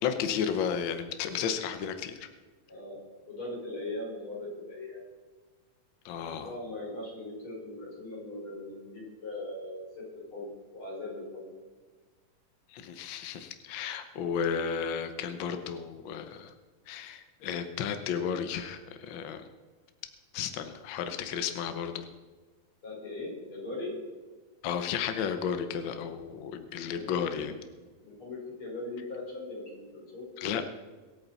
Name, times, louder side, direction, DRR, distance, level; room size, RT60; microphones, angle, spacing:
voice 1, 0.0-2.3 6.0-6.5 12.7-16.5 16.9-19.4 20.3-22.0 24.6-27.5 30.4-30.7, left 7 dB, 70° left, 8 dB, 1.1 m, -33 dB
voice 2, 2.7-5.0 6.2-11.5 22.8-24.0 26.9-27.5 28.0-30.3, left 2 dB, 45° left, -3 dB, 5.4 m, -40 dB
23.5 x 8.8 x 4.1 m, 1.3 s
omnidirectional pair, 3.3 m